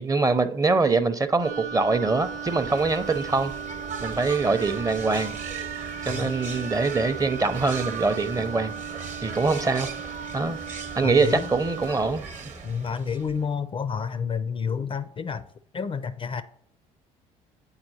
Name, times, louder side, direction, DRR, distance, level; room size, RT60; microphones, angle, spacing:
voice 1, 0.0-3.5 4.0-5.4 6.0-8.7 9.2-9.9 10.3-10.6 11.0-12.2, right 3 dB, 20° right, 0.5 m, -24 dB
Wind instrument woodwind instrument, 1.4-12.0, right 6 dB, 75° right, 0.8 m, -37 dB
sound 1, 1.9-13.5, right 5 dB, 45° right, 0.9 m, -39 dB
voice 2, 6.1-6.4 11.0-11.5 12.6-15.5 15.7-16.4, left 6 dB, 30° left, 0.4 m, -29 dB
8.7 x 4.3 x 2.7 m
hypercardioid pair, 55°, 17 cm